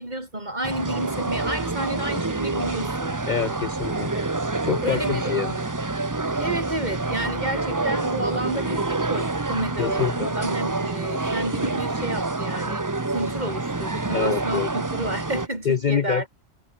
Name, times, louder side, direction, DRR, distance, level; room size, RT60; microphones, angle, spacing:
voice 1, 0.0-3.2 4.1-4.3 4.8-5.3 6.4-16.3, right 1 dB, 40° right, 5.2 m, -31 dB
sound 1, 0.6-15.5, right 3 dB, 20° right, 0.9 m, -27 dB
voice 2, 3.3-4.1 4.6-5.6 9.8-10.3 14.1-14.7 15.6-16.3, left 7 dB, 45° left, 0.7 m, -26 dB
omnidirectional pair, 1.2 m